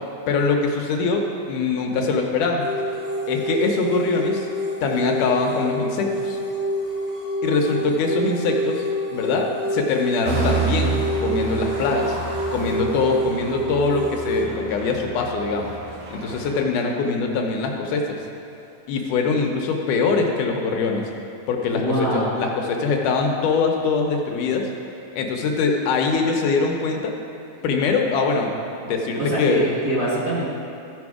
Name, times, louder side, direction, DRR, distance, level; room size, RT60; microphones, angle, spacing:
voice 1, 0.3-2.7 3.3-4.5 4.8-6.4 7.4-8.8 9.1-12.2 12.5-15.7 16.1-18.2 18.9-21.0 21.5-24.7 25.1-27.1 27.6-28.5 28.8-29.6, left 4 dB, 75° left, 2 dB, 2.2 m, -23 dB
sound 1, 2.6-14.4, equal, 25° left, 2.5 m, -28 dB
sound 2, 10.2-16.6, right 4 dB, 80° right, 3.0 m, -29 dB
voice 2, 21.7-22.4 29.2-30.5, right 1 dB, 45° right, -9 dB, 1.4 m, -24 dB
15.0 x 5.2 x 4.8 m, 2.7 s
omnidirectional pair, 3.8 m